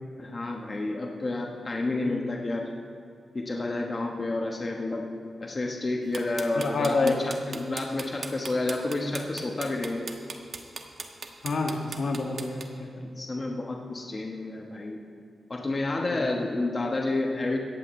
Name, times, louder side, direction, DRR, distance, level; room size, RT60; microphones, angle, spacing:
voice 1, 0.2-2.7 3.3-5.1 5.4-10.1 13.2-15.0 15.5-17.6, left 2 dB, 35° left, 0 dB, 1.2 m, -30 dB
sound 1, 6.1-12.6, right 4 dB, 60° right, 1.1 m, -38 dB
voice 2, 6.5-7.1 7.5-7.6 11.4-13.1 16.1-16.4, left 3 dB, 65° left, 1 dB, 1.5 m, -29 dB
17.0 x 14.0 x 3.2 m, 2.3 s
wide cardioid pair, 100°, 0 cm